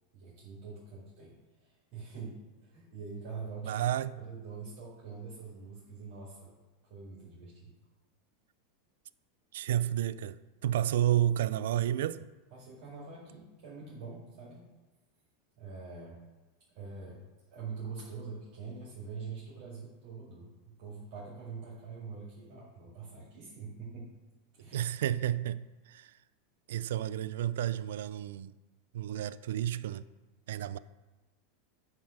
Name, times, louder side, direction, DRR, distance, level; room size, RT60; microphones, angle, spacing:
voice 1, 0.1-3.8 4.1-6.5 6.9-7.8 12.5-14.7 15.5-16.2 16.7-17.2 17.5-20.5 20.8-24.1 24.5-24.9, right 5 dB, 40° right, 2.2 m, -44 dB
voice 2, 3.6-4.2 9.5-12.3 24.7-26.1 26.7-28.5 28.9-30.1 30.5-30.8, right 11 dB, 75° right, 0.3 m, -31 dB
9.2 x 3.3 x 5.8 m
supercardioid pair, 180°, 0 cm